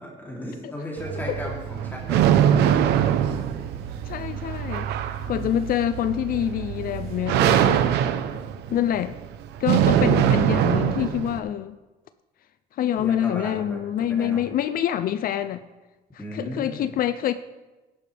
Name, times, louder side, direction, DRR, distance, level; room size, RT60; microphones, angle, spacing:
voice 1, 0.0-3.3 3.9-4.0 5.2-5.6 7.8-8.4 13.0-14.4 16.2-16.9, equal, 10° left, -3 dB, 3.1 m, -36 dB
sound 1, 1.0-11.4, right 10 dB, 80° right, 0.9 m, -22 dB
sound 2, 2.8-8.0, right 12 dB, 60° right, 4.3 m, -38 dB
voice 2, 4.1-4.9 5.3-7.9 8.7-9.2 9.6-11.7 12.7-15.6 16.3-17.3, left 10 dB, 60° left, 12 dB, 0.5 m, -26 dB
15.5 x 11.0 x 3.4 m, 1.2 s
cardioid pair, 110°, 17 cm